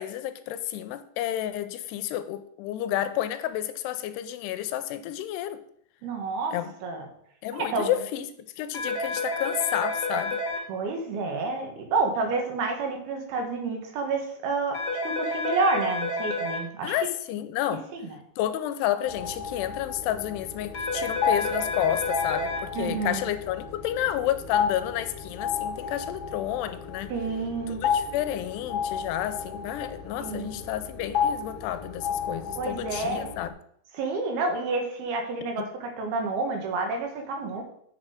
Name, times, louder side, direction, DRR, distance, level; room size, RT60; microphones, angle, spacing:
voice 1, 0.0-5.6 6.5-6.7 7.4-8.3 8.6-10.4 16.8-17.9 18.4-27.1 27.7-33.5 35.6-35.7, left 12 dB, 85° left, 11 dB, 2.6 m, -30 dB
voice 2, 6.0-7.1 7.5-7.9 10.7-14.8 15.0-16.9 17.9-18.0 22.7-23.3 27.1-27.8 30.2-30.6 32.6-33.4 33.9-37.6, right 3 dB, 70° right, 3 dB, 3.2 m, -29 dB
sound 1, 8.7-10.6 14.7-16.6 20.7-22.6, left 1 dB, 40° left, 1.4 m, -30 dB
sound 2, 19.1-33.5, left 7 dB, 65° left, 1.4 m, -32 dB
8.6 x 6.5 x 5.0 m, 0.68 s
omnidirectional pair, 4.9 m